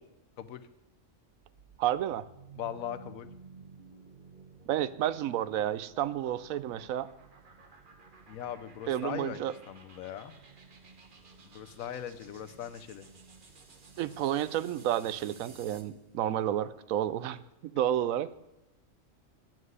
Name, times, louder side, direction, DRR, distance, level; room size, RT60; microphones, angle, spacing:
voice 1, 0.4-0.7 2.6-3.3 8.3-10.3 11.5-13.1, left 10 dB, 85° left, 12 dB, 1.2 m, -40 dB
sound 1, 1.3-16.0, right 4 dB, 40° right, 1.2 m, -54 dB
voice 2, 1.8-2.3 4.7-7.1 8.9-9.5 14.0-18.3, right 11 dB, 90° right, 15 dB, 1.0 m, -31 dB
9.2 x 7.5 x 7.9 m, 0.91 s
omnidirectional pair, 1.4 m